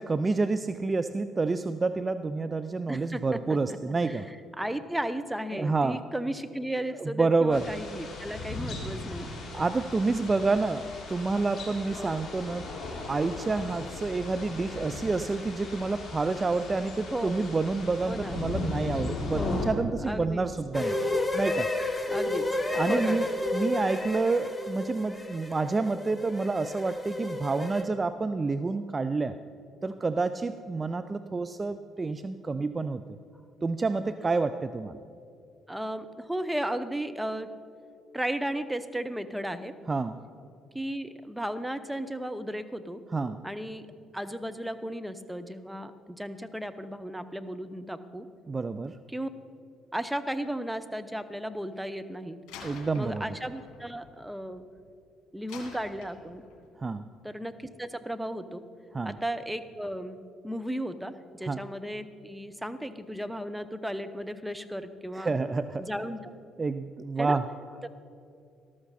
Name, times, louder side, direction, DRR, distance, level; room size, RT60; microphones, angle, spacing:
voice 1, 0.0-4.3 5.5-6.0 7.0-7.7 9.5-12.7 13.1-21.0 21.3-21.7 22.7-29.4 29.8-33.0 33.6-35.0 39.9-40.2 43.1-43.4 48.5-49.0 52.6-53.3 56.8-57.0 58.9-59.2 61.5-61.6 65.1-65.9 66.6-67.4, right 3 dB, 30° right, 11 dB, 0.4 m, -28 dB
voice 2, 2.9-3.4 3.9-9.3 10.4-10.6 12.0-12.2 17.1-17.6 18.0-18.4 19.3-19.7 20.1-20.5 22.1-22.6 22.9-23.2 35.7-37.5 38.1-39.7 40.7-43.0 43.4-43.8 44.1-48.3 49.1-49.3 49.9-52.4 53.0-54.6 55.3-56.4 57.2-58.6 59.0-60.2 60.4-65.3 65.8-66.3 67.2-67.4 67.8-67.9, right 1 dB, 5° right, 10 dB, 0.9 m, -35 dB
sound 1, 7.5-19.7, left 3 dB, 40° left, 3.5 m, -37 dB
sound 2, 20.7-27.8, left 2 dB, 15° left, 1.3 m, -31 dB
Slam, 52.5-54.9 55.5-56.7, left 5 dB, 65° left, 2.2 m, -48 dB
13.5 x 12.5 x 4.2 m, 2.5 s
hypercardioid pair, 50°, 0 cm